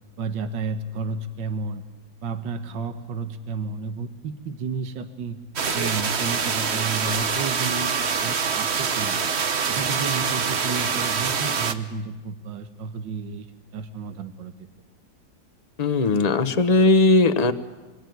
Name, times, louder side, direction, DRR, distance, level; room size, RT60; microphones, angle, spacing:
voice 1, 0.2-1.8 2.2-5.4 5.7-9.2 9.7-13.5 13.7-14.5, right 4 dB, 75° right, 8 dB, 1.9 m, -32 dB
sound 1, 5.6-11.7, right 6 dB, 40° right, 1.1 m, -25 dB
voice 2, 15.8-17.5, left 2 dB, 30° left, 10 dB, 0.8 m, -18 dB
26.0 x 21.5 x 9.3 m, 1.2 s
omnidirectional pair, 2.1 m